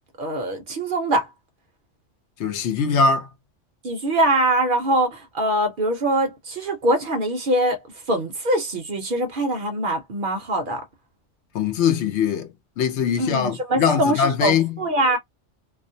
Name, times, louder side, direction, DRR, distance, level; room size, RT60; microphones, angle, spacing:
voice 1, 0.2-1.3 3.8-7.8 8.1-10.8 13.2-15.2, right 1 dB, 55° right, 0.7 m, -23 dB
voice 2, 2.4-3.3 11.5-12.5 12.8-14.8, left 6 dB, 75° left, 0.8 m, -21 dB
2.4 x 2.0 x 2.6 m
omnidirectional pair, 1.2 m